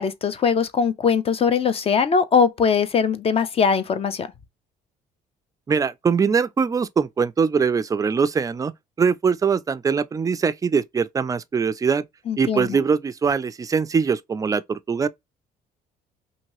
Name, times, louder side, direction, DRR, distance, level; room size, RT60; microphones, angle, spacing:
voice 1, 0.0-4.3 12.3-12.8, left 6 dB, 35° left, 0.5 m, -21 dB
voice 2, 5.7-8.7 9.0-12.0 12.4-15.1, right 5 dB, 20° right, 0.3 m, -22 dB
2.9 x 2.7 x 2.9 m
cardioid pair, 110°, 17 cm